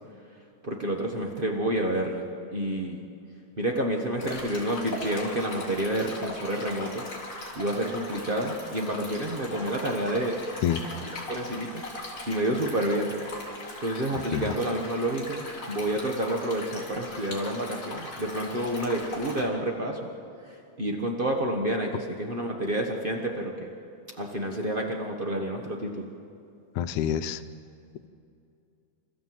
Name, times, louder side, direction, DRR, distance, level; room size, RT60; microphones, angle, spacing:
voice 1, 0.6-3.0 3.6-7.1 7.5-10.4 11.3-13.1 13.8-20.1 20.4-23.7 24.2-26.1, right 1 dB, 65° right, 1 dB, 0.5 m, -29 dB
Stream, 4.2-19.4, left 2 dB, 35° left, 4.2 m, -39 dB
voice 2, 14.1-14.5 26.8-27.4, left 10 dB, 90° left, 11 dB, 2.2 m, -27 dB
28.0 x 14.0 x 7.7 m, 2.6 s
omnidirectional pair, 3.4 m